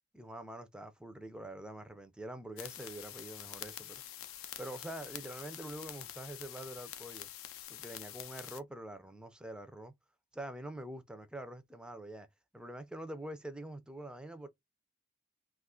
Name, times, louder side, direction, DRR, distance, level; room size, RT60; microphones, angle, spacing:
voice 1, 0.1-4.0 4.6-7.3 7.7-9.9 10.3-12.3 12.5-14.5, right 1 dB, 5° right, 0.4 m, -45 dB
sound 1, 2.6-8.6, left 12 dB, 80° left, 0.4 m, -47 dB
2.4 x 2.4 x 3.6 m
head